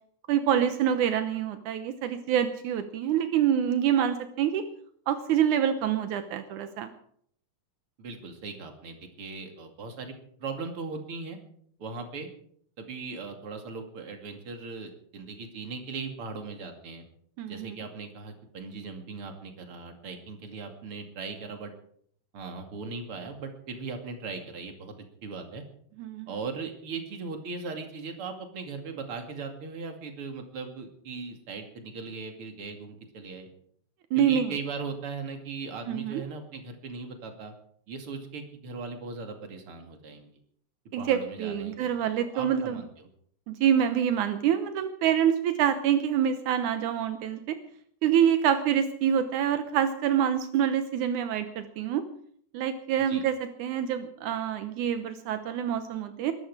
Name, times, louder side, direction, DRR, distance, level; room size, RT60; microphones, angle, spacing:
voice 1, 0.3-4.6 5.1-6.9 17.4-17.8 26.0-26.3 34.1-34.5 35.9-36.2 40.9-42.8 43.5-47.6 48.0-52.0 52.5-56.3, right 9 dB, 80° right, 9 dB, 2.4 m, -26 dB
voice 2, 8.0-11.4 11.8-12.3 12.8-17.0 17.4-21.7 22.3-24.9 25.2-25.6 26.3-33.5 34.2-37.5 37.9-40.3 41.0-41.9 42.3-42.9 53.1-53.2, right 4 dB, 45° right, 4 dB, 3.2 m, -38 dB
21.5 x 13.0 x 4.9 m, 0.63 s
omnidirectional pair, 3.6 m